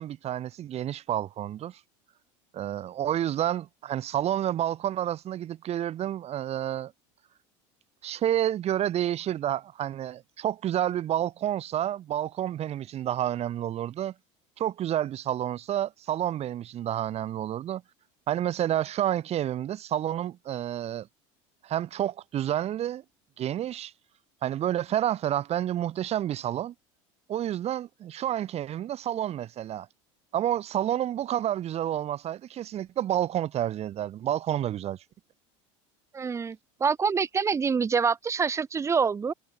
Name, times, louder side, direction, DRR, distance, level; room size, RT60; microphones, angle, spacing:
voice 1, 0.0-1.8 2.5-6.9 8.0-14.1 14.6-17.8 18.3-21.1 21.6-23.0 23.4-23.9 24.4-26.7 27.3-29.9 30.3-35.0, right 11 dB, 40° right, 1.1 m, -29 dB
voice 2, 36.1-39.3, right 5 dB, 20° right, 0.4 m, -26 dB
supercardioid pair, 95°, 16 cm